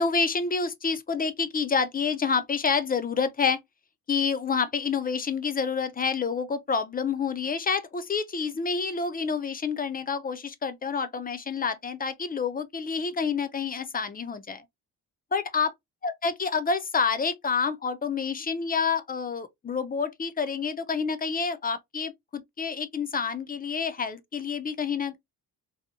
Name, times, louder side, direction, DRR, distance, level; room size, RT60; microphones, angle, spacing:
voice 1, 0.0-3.6 4.1-14.6 15.3-15.7 16.0-25.2, left 5 dB, 25° left, 0.3 m, -28 dB
2.8 x 2.6 x 2.4 m
cardioid pair, 110°, 37 cm